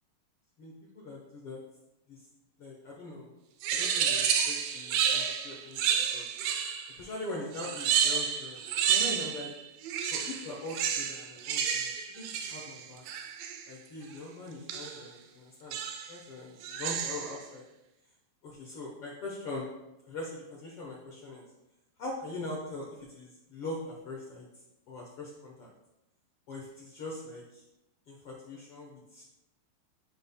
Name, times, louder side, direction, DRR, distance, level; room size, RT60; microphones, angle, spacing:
voice 1, 0.6-1.6 2.1-2.2 2.6-3.3 3.7-6.3 7.0-8.6 8.9-9.5 10.1-13.0 13.7-15.8 16.1-17.6 18.4-19.7 20.1-21.4 22.0-22.9 23.1-24.4 24.9-25.7 26.5-27.6 28.1-29.2, left 2 dB, 90° left, -3 dB, 1.2 m, -42 dB
Crazy Bird, 3.6-7.0 7.5-9.5 9.8-13.7 14.7-15.1 15.7-16.2 16.6-17.4, right 8 dB, 80° right, 2.3 m, -30 dB
11.5 x 5.3 x 2.2 m, 0.92 s
omnidirectional pair, 4.2 m